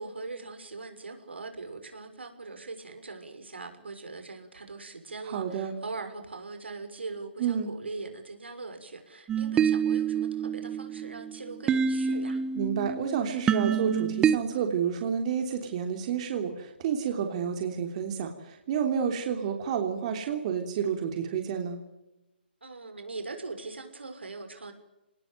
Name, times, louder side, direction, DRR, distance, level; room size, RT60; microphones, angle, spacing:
voice 1, 0.0-12.4 22.6-24.7, right 3 dB, 85° right, 6 dB, 6.3 m, -41 dB
voice 2, 5.2-5.7 7.4-7.7 12.5-21.8, right 7 dB, 40° right, 4 dB, 3.3 m, -30 dB
sound 1, 9.3-14.4, right 7 dB, 15° right, 1.0 m, -27 dB
27.0 x 19.5 x 9.2 m, 0.97 s
hypercardioid pair, 145°, 6 cm